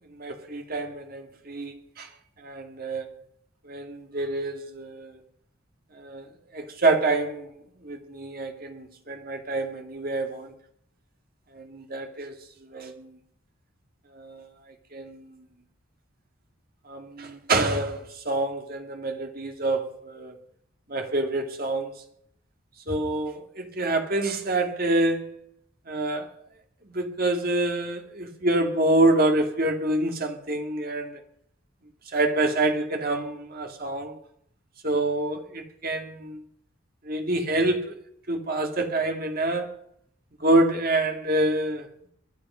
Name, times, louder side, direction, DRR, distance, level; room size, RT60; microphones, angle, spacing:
voice 1, 0.1-2.1 2.4-3.1 3.6-5.2 5.9-6.3 6.5-7.5 7.8-10.5 11.5-13.2 14.1-14.5 14.9-15.4 16.9-20.3 20.9-22.0 22.9-25.4 25.9-26.3 26.9-31.2 32.1-34.2 34.8-36.4 37.0-37.9 38.3-39.8 40.4-41.9, right 2 dB, 45° right, 2.1 m, -27 dB
22.0 x 10.5 x 5.6 m
head